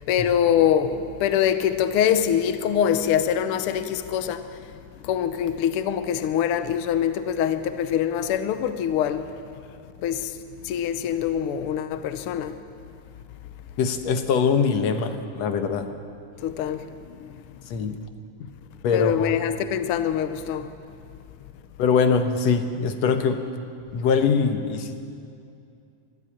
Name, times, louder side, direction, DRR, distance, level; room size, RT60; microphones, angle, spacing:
voice 1, 0.1-4.5 5.0-9.3 10.0-10.4 10.6-12.6 16.4-16.8 17.2-17.3 18.9-20.7, left 9 dB, 85° left, 1.2 m, -24 dB
voice 2, 13.8-15.9 17.7-18.0 18.8-19.3 21.8-23.4 23.9-25.0, left 5 dB, 65° left, 2.1 m, -22 dB
24.0 x 13.5 x 8.8 m
omnidirectional pair, 3.6 m